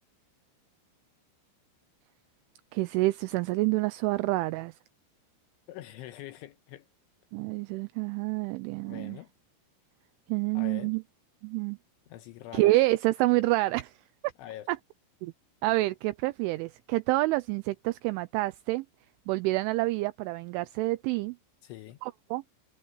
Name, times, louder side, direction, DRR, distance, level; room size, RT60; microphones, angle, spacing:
voice 1, 2.7-4.7 7.3-9.2 10.3-11.0 11.4-11.8 12.5-13.9 14.7-14.8 15.2-15.3 15.6-18.9 19.3-21.4 22.0-22.4, right 20 dB, 80° right, 2.9 m, -28 dB
voice 2, 5.7-6.9 8.8-9.3 10.5-11.0 12.1-12.7 14.4-14.7 21.6-22.0, left 13 dB, 80° left, 3.2 m, -44 dB
omnidirectional pair, 6.0 m